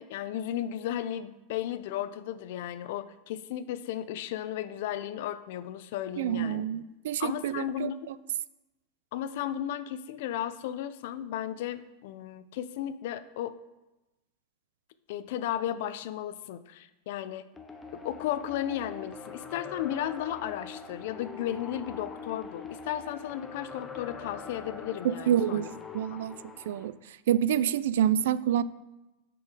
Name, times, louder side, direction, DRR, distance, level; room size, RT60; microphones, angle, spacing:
voice 1, 0.0-6.6 7.2-8.0 9.1-13.5 15.1-17.5 17.9-25.7 26.1-26.2, left 11 dB, 60° left, 13 dB, 0.4 m, -34 dB
voice 2, 6.2-8.2 25.0-25.7 25.9-26.4 26.7-26.9 27.3-28.6, right 10 dB, 80° right, 17 dB, 0.3 m, -27 dB
sound 1, 17.6-26.9, left 5 dB, 10° left, 0.6 m, -43 dB
9.2 x 4.6 x 4.9 m, 1.0 s
supercardioid pair, 160°, 0 cm